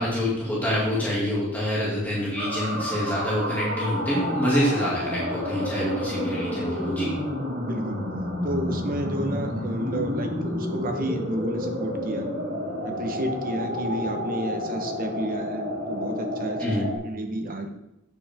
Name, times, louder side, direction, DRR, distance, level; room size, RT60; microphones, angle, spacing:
voice 1, 0.0-7.1 16.6-16.9, equal, 10° left, -7 dB, 2.2 m, -26 dB
voice 2, 0.7-1.3 7.6-8.0 8.4-12.3 12.8-17.7, equal, 40° right, 4 dB, 1.0 m, -31 dB
sound 1, 2.4-17.0, left 1 dB, 60° right, 2.9 m, -30 dB
8.5 x 6.8 x 3.6 m, 0.86 s
head